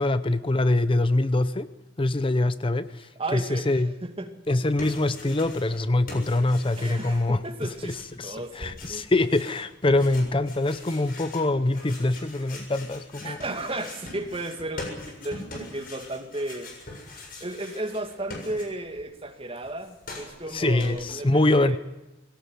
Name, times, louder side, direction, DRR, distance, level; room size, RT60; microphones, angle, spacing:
voice 1, 0.0-1.7 2.0-3.9 4.5-7.4 7.9-13.4 20.5-21.8, left 2 dB, 30° left, 13 dB, 0.7 m, -24 dB
voice 2, 3.2-4.3 6.8-8.0 8.2-9.1 9.9-10.0 13.2-21.8, right 2 dB, 30° right, 5 dB, 2.3 m, -34 dB
sound 1, 4.4-5.8 6.1-19.0 19.3-21.1, left 2 dB, 50° left, 7.1 m, -42 dB
21.0 x 18.0 x 9.6 m, 1.0 s
head